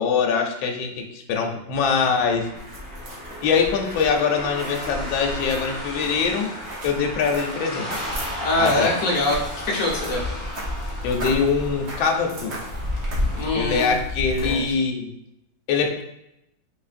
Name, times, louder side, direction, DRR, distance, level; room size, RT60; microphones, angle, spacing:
voice 1, 0.0-2.5 3.4-6.5 6.8-8.0 8.6-9.0 11.0-12.6 13.5-15.1 15.7-16.0, left 5 dB, 80° left, 2 dB, 1.3 m, -23 dB
sound 1, 2.0-13.4, equal, 20° right, 0.8 m, -35 dB
sound 2, 2.5-14.7, left 1 dB, 65° right, 0.6 m, -33 dB
voice 2, 8.4-10.2 13.4-14.0 14.4-14.6, left 2 dB, 50° left, -3 dB, 1.1 m, -23 dB
3.9 x 3.2 x 2.5 m, 0.83 s
omnidirectional pair, 2.2 m